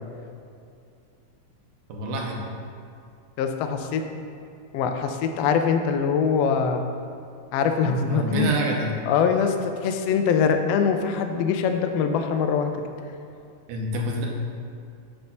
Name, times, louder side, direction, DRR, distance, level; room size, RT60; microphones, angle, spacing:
voice 1, 1.9-2.4 8.1-8.9 13.7-14.3, right 1 dB, 80° right, 0 dB, 2.3 m, -27 dB
voice 2, 3.4-4.0 4.7-6.8 7.5-8.5 9.1-12.7, left 6 dB, 90° left, 5 dB, 1.4 m, -23 dB
8.1 x 3.4 x 5.6 m, 2.5 s
omnidirectional pair, 3.4 m